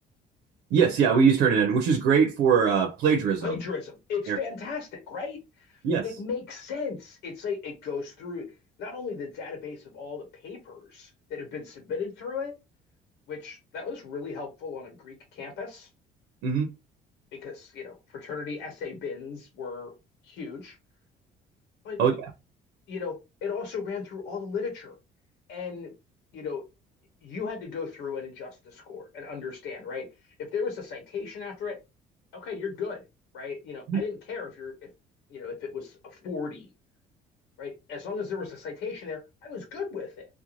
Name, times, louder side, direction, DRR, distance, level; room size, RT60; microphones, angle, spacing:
voice 1, 0.7-3.6 4.3-4.4 5.8-6.0 16.4-16.7 22.0-22.3 33.9-34.0, right 6 dB, 85° right, 0.6 m, -22 dB
voice 2, 3.4-8.5 8.8-12.5 13.3-15.9 17.3-19.9 20.2-20.8 21.8-22.0 22.9-24.9 25.5-25.9 26.3-26.6 27.2-30.1 30.4-31.8 32.3-33.0 33.3-34.9 35.3-36.7 37.6-40.3, left 5 dB, 90° left, 0.9 m, -36 dB
2.5 x 2.2 x 2.9 m
cardioid pair, 110°, 17 cm